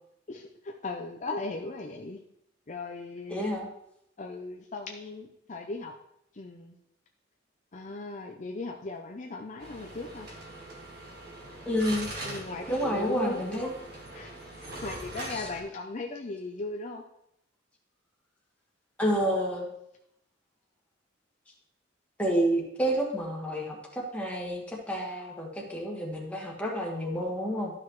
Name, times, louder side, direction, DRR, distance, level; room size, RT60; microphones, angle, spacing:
voice 1, 0.3-2.2 2.7-3.5 4.2-5.9 6.3-6.8 7.7-10.3 12.2-13.6 14.1-14.3 14.6-17.0, left 3 dB, 40° left, 2 dB, 0.6 m, -38 dB
voice 2, 3.3-3.7 11.6-12.1 12.7-13.7 15.3-15.4 19.0-19.7 22.2-27.7, equal, 5° left, -2 dB, 1.7 m, -29 dB
sound 1, 9.6-15.6, right 2 dB, 55° right, 1.8 m, -42 dB
12.5 x 5.8 x 3.1 m, 0.78 s
head